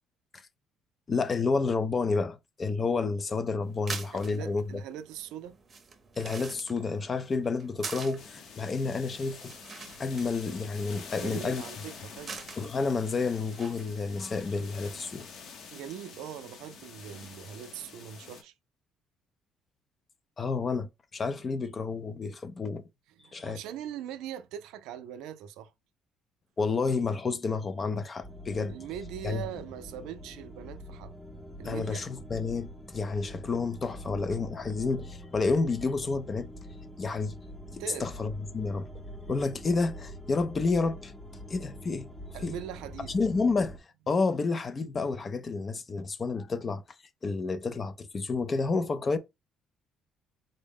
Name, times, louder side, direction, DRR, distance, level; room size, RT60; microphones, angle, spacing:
voice 1, 1.1-4.6 6.2-9.6 10.0-11.6 12.6-15.3 20.4-22.8 23.3-23.6 26.6-28.8 29.2-29.4 31.6-36.5 37.0-37.4 37.7-38.9 39.3-41.1 41.5-42.1 42.4-42.6 43.1-43.8 44.1-46.8 47.2-49.2, left 4 dB, 25° left, 0.3 m, -30 dB
sound 1, 3.6-14.4, right 5 dB, 25° right, 0.7 m, -46 dB
voice 2, 4.1-5.6 11.1-12.4 15.7-18.5 23.2-25.7 28.7-31.1 31.6-32.0 37.8-38.1 42.3-43.1, right 10 dB, 85° right, 0.4 m, -41 dB
sound 2, 8.2-18.4, left 5 dB, 55° left, 0.7 m, -47 dB
sound 3, 28.2-43.8, equal, 10° left, 0.7 m, -45 dB
3.8 x 2.1 x 3.5 m
cardioid pair, 145°, 0 cm